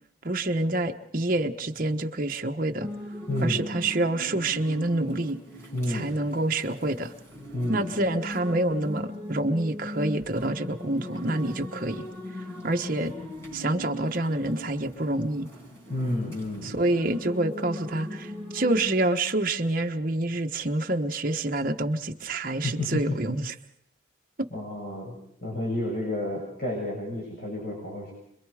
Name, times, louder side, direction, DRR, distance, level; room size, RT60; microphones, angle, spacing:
voice 1, 0.2-2.9 3.4-5.4 5.9-7.1 7.7-12.0 12.6-13.1 13.5-15.5 16.6-23.5 24.4-24.5, right 2 dB, 45° right, 5 dB, 1.2 m, -27 dB
sound 1, 2.8-18.8, left 1 dB, 15° left, 5.6 m, -39 dB
voice 2, 3.3-3.6 5.7-6.1 7.5-7.9 15.9-16.7 22.6-23.2 24.5-25.2 25.4-28.1, left 1 dB, 50° left, -2 dB, 6.8 m, -30 dB
27.0 x 23.0 x 5.0 m, 0.75 s
head